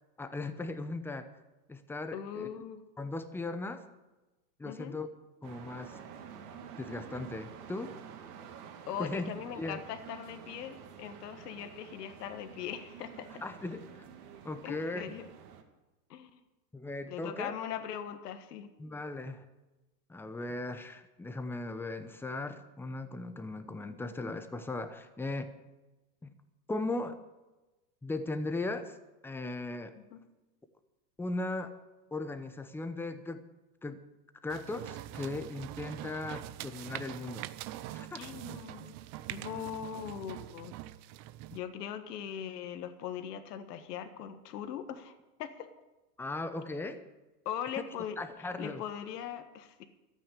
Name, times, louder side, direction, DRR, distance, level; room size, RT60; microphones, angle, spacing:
voice 1, 0.2-1.3 1.7-2.6 3.0-3.9 4.6-5.1 5.4-6.0 6.8-7.9 9.0-9.3 9.6-9.8 13.4-13.8 14.4-15.1 16.7-17.6 18.8-19.4 20.1-25.5 26.2-26.3 26.7-27.2 28.0-29.0 29.2-30.0 31.2-31.7 32.1-33.4 33.8-34.0 34.4-37.4 37.9-38.2 46.2-47.0 48.2-48.8, left 2 dB, 5° left, 9 dB, 0.8 m, -37 dB
voice 2, 2.1-2.8 4.6-5.0 8.9-13.4 14.6-15.2 16.1-16.4 17.1-18.7 23.8-24.1 30.1-30.2 38.2-39.0 39.3-40.7 41.5-45.7 47.4-48.2 48.6-49.8, left 9 dB, 80° left, 9 dB, 1.6 m, -40 dB
sound 1, 5.4-15.6, right 7 dB, 75° right, 2.3 m, -49 dB
sound 2, 34.5-41.6, right 14 dB, 35° right, 0.6 m, -43 dB
13.5 x 9.2 x 8.3 m, 1.1 s
supercardioid pair, 130°, 47 cm